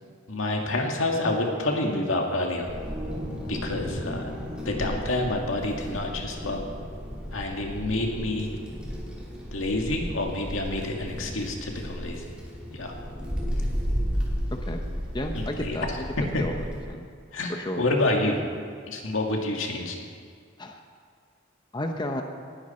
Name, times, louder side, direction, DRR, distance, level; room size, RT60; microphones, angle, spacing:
voice 1, 0.3-2.7 3.5-4.3 4.7-6.6 7.3-8.5 9.5-12.2 12.7-12.9 15.3-15.9 16.3-16.4 17.3-18.5 18.9-20.0, left 2 dB, 75° left, 1 dB, 2.0 m, -28 dB
Wind, 2.6-16.8, equal, 5° right, 2.9 m, -33 dB
voice 2, 15.1-16.1 16.4-17.1 17.5-17.8 20.6-20.8 21.7-22.2, left 1 dB, 20° left, 4 dB, 0.8 m, -32 dB
19.0 x 11.5 x 4.4 m, 2.1 s
head